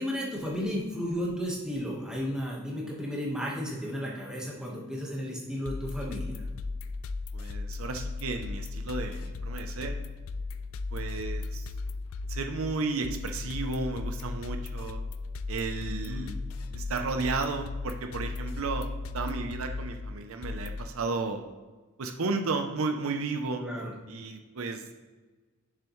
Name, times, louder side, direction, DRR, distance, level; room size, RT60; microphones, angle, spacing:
voice 1, 0.0-6.4 15.9-16.3 23.6-23.9, equal, 5° right, -4 dB, 1.2 m, -33 dB
sound 1, 5.7-20.9, left 3 dB, 70° left, 0.3 m, -36 dB
voice 2, 7.3-10.0 10.9-11.7 12.3-15.0 15.5-16.4 16.7-18.9 19.1-21.4 22.0-23.6 24.1-24.9, right 3 dB, 70° right, 6 dB, 0.6 m, -33 dB
6.9 x 6.6 x 3.1 m, 1.3 s
head